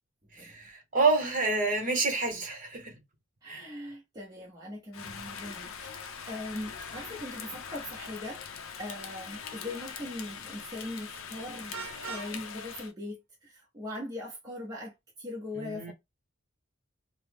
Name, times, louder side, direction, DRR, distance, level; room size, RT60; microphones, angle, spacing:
voice 1, 0.3-2.9 3.4-3.7 15.6-15.9, right 3 dB, 40° right, 1.0 m, -28 dB
voice 2, 3.4-15.9, left 1 dB, 20° right, 0.6 m, -41 dB
Rain, 4.9-12.9, left 6 dB, 75° left, 0.5 m, -42 dB
Vehicle horn car horn honking, 11.7-12.3, right 5 dB, 75° right, 0.7 m, -40 dB
2.9 x 2.0 x 3.3 m
head